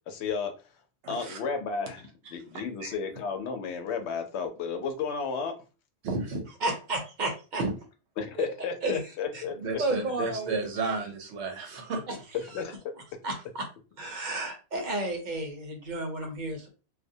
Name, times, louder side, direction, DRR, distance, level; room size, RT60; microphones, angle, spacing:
voice 1, 0.1-0.5 1.1-5.5 8.2-9.6 12.5-12.8, left 5 dB, 90° left, 6 dB, 0.9 m, -33 dB
voice 2, 1.0-1.4 2.8-2.9 6.0-6.5 7.6-7.7 9.6-12.0, right 3 dB, 85° right, 4 dB, 1.0 m, -32 dB
voice 3, 6.6-7.6 8.4-8.5 8.8-9.0 9.3-9.4 9.8-10.6 10.8-11.0 12.1-12.2 13.2-13.7 14.0-16.7, right 2 dB, 50° right, 3 dB, 0.7 m, -32 dB
2.3 x 2.1 x 2.6 m, 0.33 s
omnidirectional pair, 1.1 m